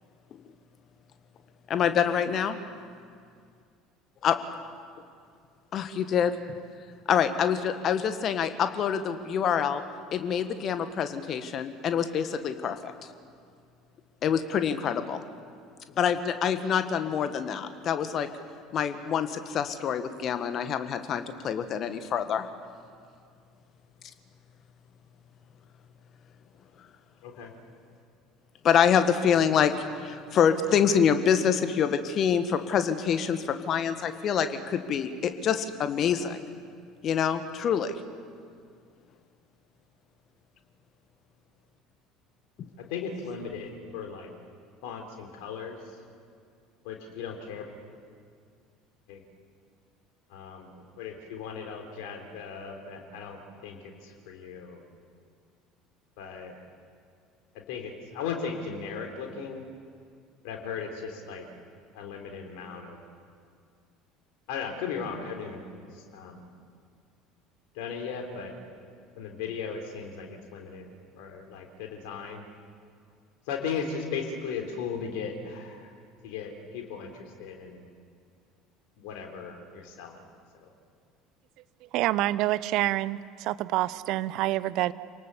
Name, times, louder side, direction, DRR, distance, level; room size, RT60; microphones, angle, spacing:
voice 1, 1.7-2.6 4.2-4.4 5.7-6.4 7.1-9.8 10.1-12.9 14.2-15.2 16.0-18.3 18.7-22.5 28.6-36.4 37.0-37.9 42.6-42.7, left 8 dB, 45° left, 9 dB, 1.7 m, -26 dB
voice 2, 42.8-44.3 44.8-45.8 46.8-47.7 49.1-49.2 50.3-54.9 56.2-56.6 57.5-59.6 60.4-61.5 61.9-63.0 64.5-65.6 65.9-66.5 67.7-68.5 69.2-70.8 71.2-72.4 73.5-75.9 76.2-77.9 79.0-80.2 80.5-80.7, left 6 dB, 60° left, 3 dB, 3.8 m, -37 dB
voice 3, 81.9-84.9, right 16 dB, 55° right, 17 dB, 0.7 m, -27 dB
27.5 x 18.5 x 7.2 m, 2.2 s
figure-of-eight pair, 65°, 0 cm